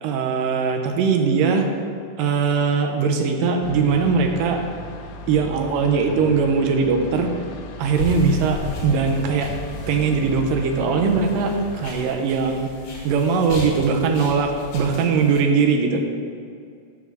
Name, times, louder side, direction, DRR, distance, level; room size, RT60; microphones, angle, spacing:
voice 1, 0.0-1.7 2.2-4.6 5.3-7.3 7.8-9.5 9.9-12.7 13.0-16.0, right 5 dB, 80° right, 4 dB, 2.2 m, -20 dB
sound 1, 3.6-11.9, left 2 dB, 80° left, 2.0 m, -36 dB
sound 2, 7.9-15.4, left 2 dB, 50° left, 2.3 m, -35 dB
8.3 x 3.4 x 6.4 m, 2.2 s
omnidirectional pair, 4.0 m